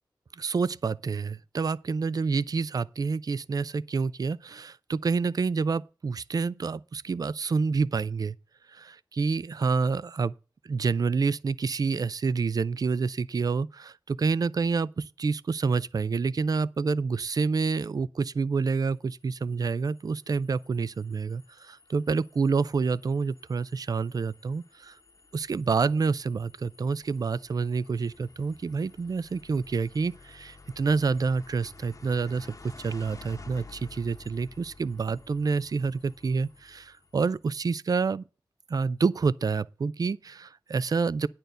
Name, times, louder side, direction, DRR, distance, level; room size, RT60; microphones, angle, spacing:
voice 1, 0.4-8.4 8.7-10.3 10.6-25.0 25.3-38.2 38.7-41.3, right 4 dB, 50° right, 0.4 m, -28 dB
sound 1, 18.9-37.5, left 3 dB, 45° left, 1.0 m, -52 dB
10.5 x 4.4 x 7.9 m
wide cardioid pair, 80°, 8 cm